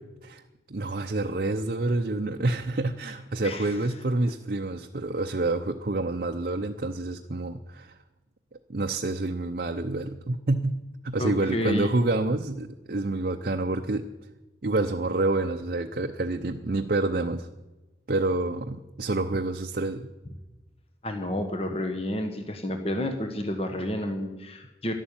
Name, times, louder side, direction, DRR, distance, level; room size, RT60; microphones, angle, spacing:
voice 1, 0.7-7.9 8.7-14.1 14.6-17.5 18.1-20.1, right 2 dB, 50° right, 4 dB, 0.7 m, -28 dB
voice 2, 3.4-3.8 11.2-11.9 21.0-24.9, left 1 dB, 30° left, 6 dB, 1.3 m, -30 dB
12.5 x 11.5 x 8.9 m, 1.1 s
head